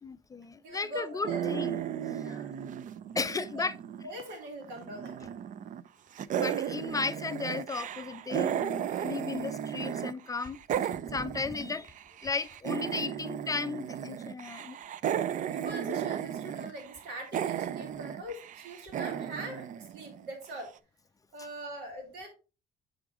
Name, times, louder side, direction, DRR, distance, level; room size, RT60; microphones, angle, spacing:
voice 1, 0.0-1.8 3.1-3.7 6.4-10.6 11.1-11.9 12.2-14.8, left 4 dB, 20° left, 0.4 m, -35 dB
voice 2, 0.6-1.5 2.2-2.5 3.3-3.6 4.0-5.3 15.5-20.7 21.3-22.3, right 1 dB, 85° right, 3.0 m, -42 dB
sound 1, 1.2-4.3 4.6-5.9 6.2-10.1 10.4-20.5, right 9 dB, 50° right, 0.5 m, -35 dB
7.5 x 5.0 x 3.5 m
cardioid pair, 110°, 17 cm